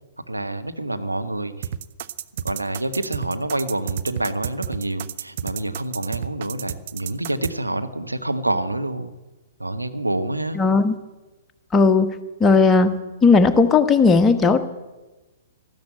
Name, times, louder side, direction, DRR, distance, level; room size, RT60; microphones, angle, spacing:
voice 1, 0.2-1.7 2.3-9.1 9.6-10.6, right 1 dB, 90° right, 10 dB, 1.1 m, -27 dB
sound 1, 1.6-7.5, right 10 dB, 50° right, 0.6 m, -30 dB
voice 2, 10.6-11.0 11.7-12.1 12.4-12.9 13.2-14.6, left 4 dB, 15° left, 6 dB, 1.1 m, -16 dB
13.0 x 13.0 x 8.4 m, 1.1 s
figure-of-eight pair, 115°, 0 cm